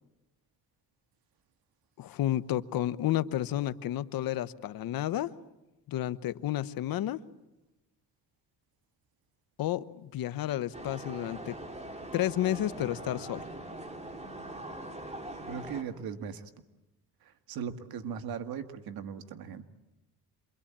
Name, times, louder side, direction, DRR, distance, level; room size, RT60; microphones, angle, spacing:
voice 1, 2.0-5.3 5.9-7.2 9.6-11.5 12.1-13.5, left 13 dB, 65° left, 14 dB, 1.1 m, -31 dB
sound 1, 10.7-15.8, right 1 dB, 15° right, 3.3 m, -42 dB
voice 2, 15.5-16.5 17.5-19.7, right 7 dB, 70° right, 9 dB, 1.9 m, -38 dB
27.5 x 23.0 x 8.8 m, 1.0 s
cardioid pair, 100°, 37 cm